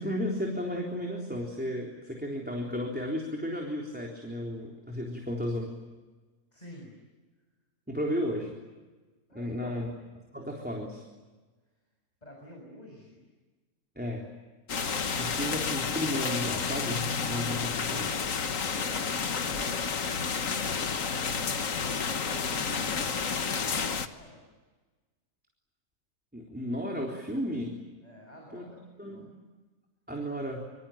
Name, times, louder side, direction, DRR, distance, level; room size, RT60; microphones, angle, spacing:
voice 1, 0.0-5.7 7.9-8.5 9.3-9.9 10.3-11.0 14.0-14.3 15.2-18.1 26.3-27.7 28.5-28.6 29.0-29.3 30.1-30.6, equal, 5° right, -1 dB, 3.8 m, -33 dB
voice 2, 6.5-6.9 9.3-9.9 12.2-13.3 18.7-21.2 22.1-24.4 28.0-29.4, left 1 dB, 25° left, 0 dB, 6.9 m, -49 dB
sound 1, 14.7-24.1, left 5 dB, 60° left, 1.7 m, -30 dB
26.5 x 25.0 x 8.9 m, 1.3 s
omnidirectional pair, 1.6 m